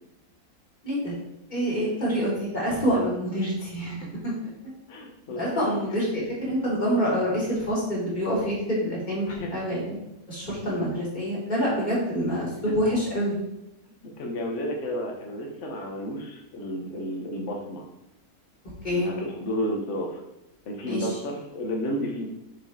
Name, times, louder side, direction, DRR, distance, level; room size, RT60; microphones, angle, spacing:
voice 1, 1.5-4.0 4.2-4.3 5.3-10.0 10.3-13.3 18.8-19.1 20.8-21.0, equal, 30° left, -7 dB, 2.9 m, -26 dB
voice 2, 4.9-6.1 9.3-9.5 14.2-17.9 18.9-20.2 20.7-22.3, equal, 50° left, 1 dB, 1.3 m, -32 dB
6.7 x 4.6 x 4.7 m, 0.89 s
omnidirectional pair, 1.7 m